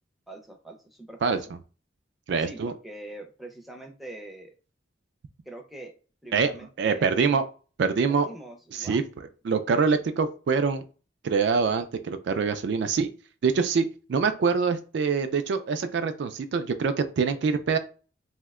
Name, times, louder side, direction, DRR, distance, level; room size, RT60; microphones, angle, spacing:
voice 1, 0.3-1.4 2.4-4.5 5.5-5.9 6.2-7.4 8.1-9.0, right 1 dB, ahead, 2 dB, 0.5 m, -43 dB
voice 2, 2.3-2.7 6.3-6.5 6.8-7.4 7.8-8.3 8.7-9.0 9.4-10.8 11.2-13.1 13.4-17.8, right 5 dB, 65° right, 9 dB, 0.3 m, -25 dB
2.7 x 2.1 x 3.5 m, 0.36 s
head